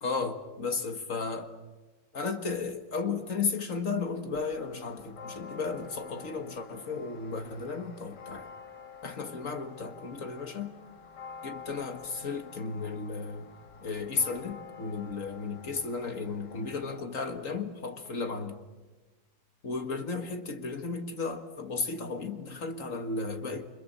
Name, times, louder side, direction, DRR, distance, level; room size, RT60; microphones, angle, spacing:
voice 1, 0.0-1.5 2.1-8.5 9.0-10.7 11.4-13.5 13.8-18.6 19.6-23.7, left 4 dB, 50° left, 1.9 m, -34 dB
sound 1, 4.3-17.0, left 6 dB, 70° left, 2.0 m, -48 dB
29.5 x 25.0 x 6.8 m
omnidirectional pair, 1.9 m